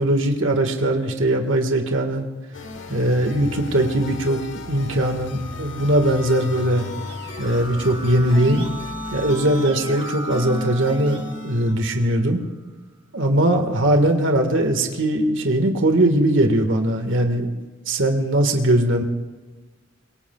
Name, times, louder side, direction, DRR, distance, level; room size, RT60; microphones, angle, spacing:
voice 1, 0.0-2.3 2.9-4.4 4.7-6.8 7.4-8.6 9.1-12.4 13.1-17.5 17.9-19.0, right 1 dB, 75° right, 4 dB, 1.7 m, -20 dB
sound 1, 2.5-11.7, left 2 dB, 70° left, 1.3 m, -34 dB
Keyboard (musical), 5.8-12.4, right 4 dB, 25° right, 2.1 m, -39 dB
26.5 x 23.0 x 2.3 m, 1.3 s
head